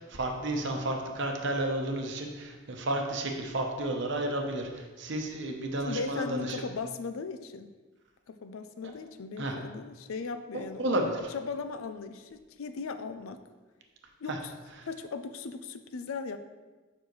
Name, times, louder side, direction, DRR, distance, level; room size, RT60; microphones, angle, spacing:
voice 1, 0.0-6.6 9.4-9.6 10.5-11.1 14.3-14.4 14.8-14.9, right 1 dB, 60° right, 2 dB, 0.9 m, -32 dB
voice 2, 5.8-7.7 8.3-13.4 14.2-14.5 14.9-16.4, left 4 dB, 85° left, 9 dB, 0.5 m, -38 dB
7.1 x 5.6 x 3.1 m, 1.3 s
head